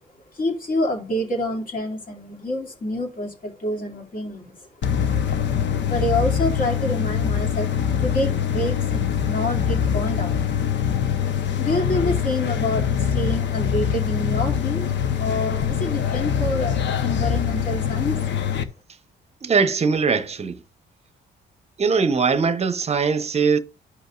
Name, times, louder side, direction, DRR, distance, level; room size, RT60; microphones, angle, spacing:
voice 1, 0.3-4.7 5.9-7.7 8.0-10.4 11.6-14.8 15.1-18.2, left 1 dB, 45° left, 2.5 m, -27 dB
sound 1, 4.8-18.6, left 8 dB, 65° left, 0.9 m, -23 dB
voice 2, 19.4-20.6 21.8-23.6, right 5 dB, 30° right, 0.8 m, -21 dB
12.0 x 5.3 x 2.4 m
cardioid pair, 90°, 20 cm